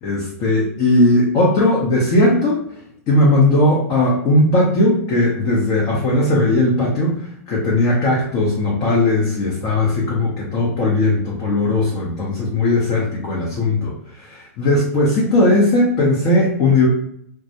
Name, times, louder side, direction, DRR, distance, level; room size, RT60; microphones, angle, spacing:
voice 1, 0.0-2.6 3.1-7.2 7.5-16.9, left 2 dB, 40° left, -3 dB, 0.8 m, -17 dB
2.2 x 2.1 x 2.8 m, 0.71 s
hypercardioid pair, 100°, 8 cm